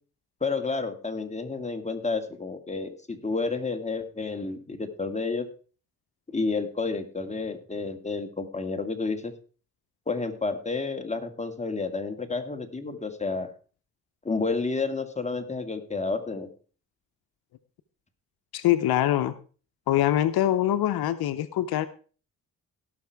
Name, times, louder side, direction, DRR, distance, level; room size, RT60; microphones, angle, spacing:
voice 1, 0.4-5.5 6.3-9.3 10.1-13.5 14.2-16.5, left 3 dB, 20° left, 6 dB, 2.0 m, -30 dB
voice 2, 18.5-19.3 19.9-21.9, left 12 dB, 85° left, 13 dB, 0.7 m, -24 dB
17.5 x 6.0 x 4.7 m, 0.39 s
cardioid pair, 60°, 37 cm